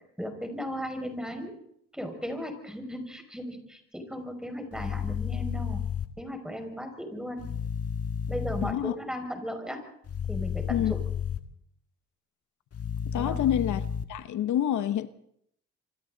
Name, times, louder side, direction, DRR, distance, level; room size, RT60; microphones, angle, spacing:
voice 1, 0.2-1.6 1.9-5.8 6.2-7.5 8.3-9.8 10.3-11.0 13.2-13.4, equal, ahead, 5.8 m, -36 dB
sound 1, 4.7-6.1 7.4-8.7 10.1-11.4 12.7-14.0, left 7 dB, 50° left, 1.7 m, -32 dB
voice 2, 8.6-8.9 10.7-10.9 13.1-13.8 14.1-15.1, left 11 dB, 75° left, 1.0 m, -27 dB
26.5 x 24.5 x 4.0 m
cardioid pair, 90°, 30 cm